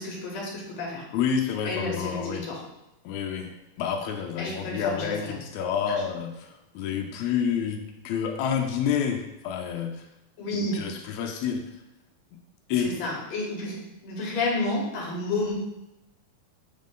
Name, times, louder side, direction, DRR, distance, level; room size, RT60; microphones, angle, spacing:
voice 1, 0.0-1.0 1.7-2.6 4.4-5.4 5.9-6.0 10.4-10.8 12.8-15.5, left 2 dB, 55° left, -3 dB, 2.3 m, -31 dB
voice 2, 1.1-2.4 3.0-10.0 10.7-11.7 12.7-12.9, left 7 dB, 90° left, 3 dB, 1.6 m, -29 dB
7.9 x 3.7 x 3.8 m, 0.90 s
omnidirectional pair, 3.9 m